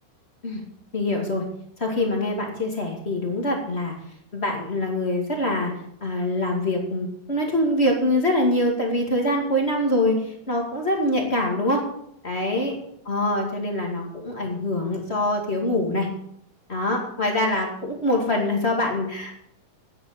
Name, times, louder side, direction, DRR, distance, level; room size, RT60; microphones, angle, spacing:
voice 1, 0.9-1.4 1.8-3.9 4.3-5.7 6.0-11.8 12.2-12.8 13.1-16.1 16.7-19.3, left 1 dB, 20° left, 1 dB, 2.1 m, -24 dB
9.7 x 9.5 x 7.9 m, 0.73 s
omnidirectional pair, 3.9 m